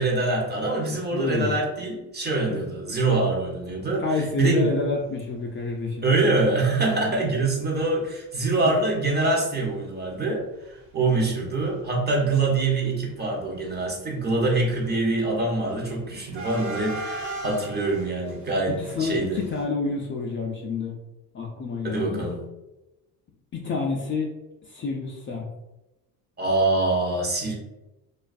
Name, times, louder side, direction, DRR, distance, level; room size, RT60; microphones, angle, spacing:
voice 1, 0.0-4.0 4.4-4.7 6.0-19.4 21.8-22.4 26.4-27.5, right 3 dB, 25° right, -1 dB, 0.7 m, -24 dB
voice 2, 1.1-1.6 2.5-2.6 4.0-6.1 18.8-21.0 21.3-22.2 23.5-24.3 24.7-25.5, left 4 dB, 30° left, 0 dB, 0.4 m, -28 dB
sound 1, 3.7-3.9 4.4-4.5 4.6-4.8 5.6-5.7 6.1-6.3 6.6-6.7 7.1-9.3 9.5-10.3 10.5-19.7, right 1 dB, 70° right, 0.9 m, -40 dB
2.5 x 2.3 x 2.4 m, 0.97 s
supercardioid pair, 80°, 38 cm